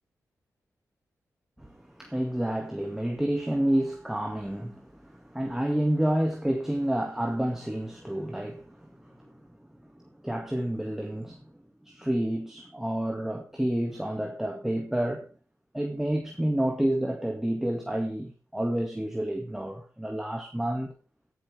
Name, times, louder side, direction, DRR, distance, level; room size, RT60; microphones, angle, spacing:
voice 1, 1.6-9.4 9.9-11.5 11.8-15.3 15.7-20.9, right 1 dB, 5° right, 2.1 m, -29 dB
17.5 x 11.5 x 3.4 m
cardioid pair, 65°, 6 cm